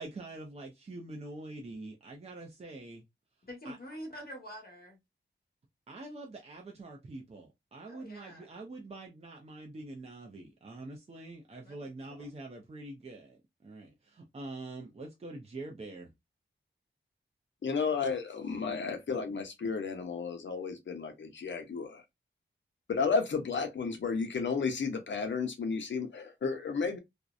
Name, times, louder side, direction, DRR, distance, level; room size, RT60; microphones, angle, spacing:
voice 1, 0.0-3.0 3.6-3.8 5.9-16.1, right 2 dB, 30° right, 0.4 m, -45 dB
voice 2, 3.4-5.0 7.9-8.6 11.5-11.9, equal, 50° left, 1.1 m, -46 dB
voice 3, 17.6-22.0 22.9-27.0, left 5 dB, 65° left, 0.6 m, -32 dB
2.6 x 2.0 x 2.3 m
wide cardioid pair, 110°, 20 cm